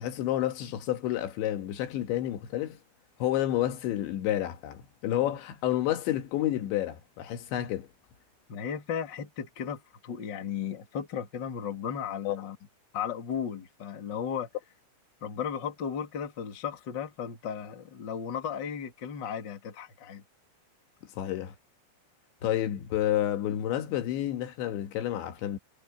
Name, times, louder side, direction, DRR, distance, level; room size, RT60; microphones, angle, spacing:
voice 1, 0.0-2.8 3.2-7.9 12.3-12.4 21.1-21.6 22.4-25.6, left 12 dB, 80° left, 3.9 m, -30 dB
voice 2, 8.5-12.6 12.9-14.5 15.2-20.2, left 7 dB, 35° left, 2.2 m, -35 dB
omnidirectional pair, 5.2 m